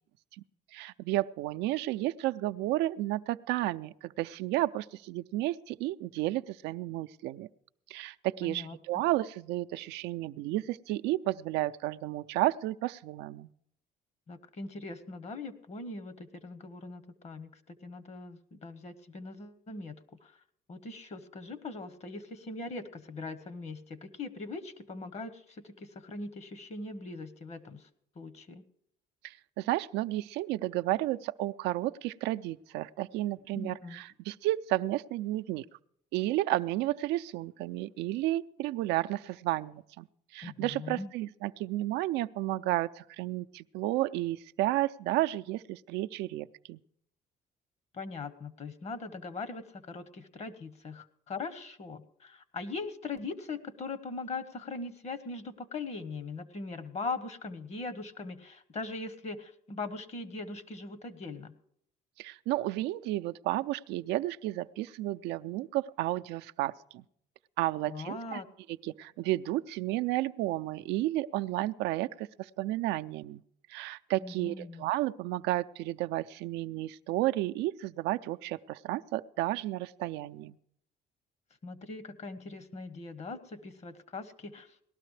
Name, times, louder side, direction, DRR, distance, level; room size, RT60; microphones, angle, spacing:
voice 1, 0.7-7.5 7.9-13.5 29.2-35.6 36.1-40.1 40.3-46.8 62.2-67.0 67.6-68.4 68.8-73.4 73.7-80.6, right 16 dB, 90° right, 9 dB, 0.4 m, -32 dB
voice 2, 8.4-8.8 14.3-20.4 20.7-27.9 28.2-28.6 33.5-34.0 40.4-41.1 47.9-61.5 67.9-68.5 74.2-74.9 81.6-84.9, left 3 dB, 40° left, 14 dB, 1.1 m, -41 dB
19.0 x 12.5 x 3.3 m, 0.69 s
cardioid pair, 110°, 17 cm